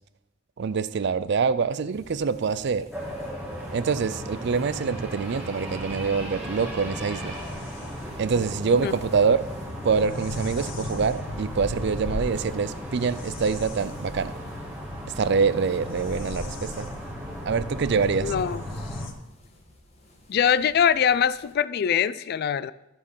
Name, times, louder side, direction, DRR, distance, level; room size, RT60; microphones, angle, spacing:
voice 1, 0.6-2.9 3.7-7.4 8.2-9.4 9.8-14.3 15.2-16.9 17.5-18.3, right 5 dB, 60° right, 15 dB, 0.4 m, -25 dB
sound 1, 1.9-21.6, left 1 dB, 35° left, 1.5 m, -53 dB
sound 2, 2.9-19.1, equal, 10° right, 1.7 m, -37 dB
sound 3, 6.8-19.1, left 2 dB, 75° left, 1.0 m, -38 dB
voice 2, 18.2-18.6 20.3-22.7, left 8 dB, 55° left, 17 dB, 0.3 m, -23 dB
13.0 x 4.4 x 5.5 m, 0.94 s
head